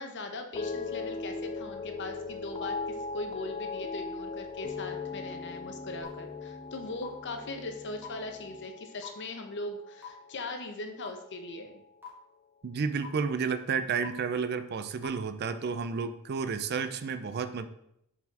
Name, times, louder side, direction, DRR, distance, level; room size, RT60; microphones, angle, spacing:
voice 1, 0.0-11.8, left 2 dB, 55° left, 5 dB, 0.9 m, -40 dB
sound 1, 0.5-10.9 11.2-11.8, left 4 dB, 30° left, 0.4 m, -39 dB
sound 2, 6.0-6.1 7.0-7.1 8.0-8.1 9.0-9.1 10.0-10.1 11.0-11.1 12.0-12.1 13.0-13.1 14.0-14.1 15.0-15.1, left 8 dB, 10° right, 1.7 m, -42 dB
voice 2, 12.6-17.7, right 5 dB, 50° right, 11 dB, 0.4 m, -31 dB
6.8 x 4.2 x 4.2 m, 0.76 s
head